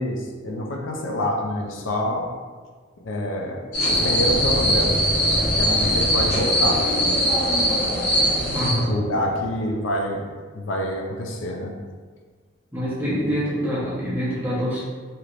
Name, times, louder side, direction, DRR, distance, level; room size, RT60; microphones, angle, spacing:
voice 1, 0.0-2.3 3.0-5.0 5.4-7.9 8.8-10.3 10.5-11.7, left 1 dB, 85° left, 1 dB, 0.5 m, -27 dB
sound 1, 3.7-8.7, equal, 60° left, 1.1 m, -21 dB
sound 2, 3.8-9.7, left 1 dB, 35° left, 0.6 m, -29 dB
voice 2, 8.5-9.0 12.7-14.8, equal, 10° right, -7 dB, 0.7 m, -25 dB
3.2 x 2.8 x 2.5 m, 1.5 s
head